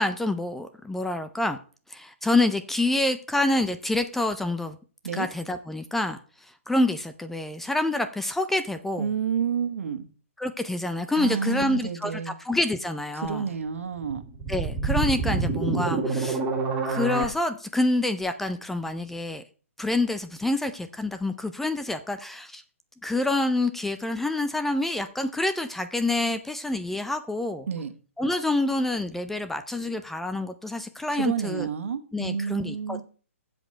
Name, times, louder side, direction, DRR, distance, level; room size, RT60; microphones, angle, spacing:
voice 1, 0.0-1.6 1.9-4.8 5.1-6.2 6.7-9.1 10.4-13.5 14.5-16.4 16.8-19.4 19.8-22.6 23.0-27.7 28.2-31.7 32.1-33.0, left 2 dB, 5° left, 10 dB, 0.5 m, -27 dB
voice 2, 9.0-10.1 11.1-12.4 13.1-14.2 27.7-27.9 31.1-33.0, right 7 dB, 70° right, 8 dB, 1.5 m, -29 dB
sound 1, 14.0-17.3, right 4 dB, 15° right, 2.4 m, -27 dB
15.5 x 5.2 x 4.4 m, 0.39 s
hypercardioid pair, 150°, 8 cm